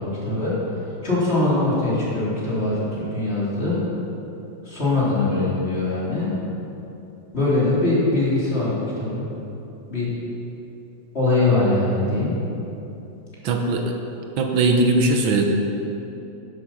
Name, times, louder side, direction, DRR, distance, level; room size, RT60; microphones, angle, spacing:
voice 1, 0.0-3.8 4.6-6.3 7.3-9.3 9.9-10.1 11.1-12.4, left 2 dB, 30° left, -8 dB, 3.7 m, -22 dB
voice 2, 13.4-14.0 14.4-15.4, right 2 dB, 80° right, 3 dB, 1.8 m, -19 dB
11.5 x 11.0 x 5.7 m, 3.0 s
omnidirectional pair, 2.1 m